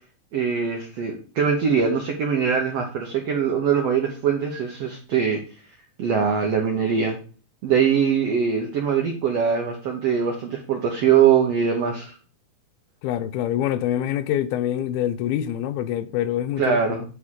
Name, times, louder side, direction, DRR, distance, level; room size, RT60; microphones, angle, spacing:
voice 1, 0.3-5.4 6.0-7.2 7.6-12.2 16.6-17.0, right 7 dB, 80° right, 1.4 m, -22 dB
voice 2, 13.0-16.8, left 11 dB, 85° left, 2.5 m, -25 dB
9.1 x 3.7 x 6.3 m
omnidirectional pair, 4.4 m